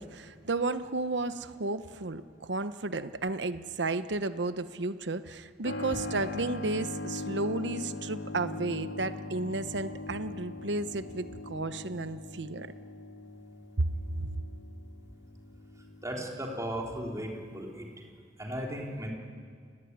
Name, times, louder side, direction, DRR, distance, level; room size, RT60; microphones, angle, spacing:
voice 1, 0.0-12.7 13.8-14.3, right 2 dB, 75° right, 12 dB, 1.0 m, -33 dB
Keyboard (musical), 5.6-18.0, left 2 dB, 75° left, 2.4 m, -41 dB
voice 2, 16.0-17.9 18.4-19.1, equal, 20° right, -1 dB, 3.6 m, -36 dB
30.0 x 17.5 x 9.5 m, 2.1 s
head